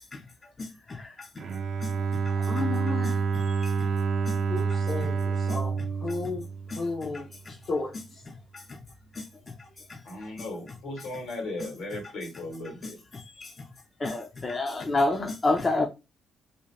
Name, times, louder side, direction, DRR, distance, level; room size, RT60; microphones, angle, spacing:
Bowed string instrument, 1.4-7.3, right 5 dB, 55° right, 0.4 m, -28 dB
voice 1, 2.5-3.1 3.6-3.7 6.7-6.8 13.4-13.5 14.0-15.9, left 2 dB, 30° left, 0.4 m, -27 dB
voice 2, 4.5-6.4 6.8-7.3 7.7-7.9, left 3 dB, 60° left, 0.7 m, -33 dB
voice 3, 10.0-13.0, left 2 dB, 80° left, 1.3 m, -37 dB
2.6 x 2.1 x 3.1 m
cardioid pair, 90°, 0 cm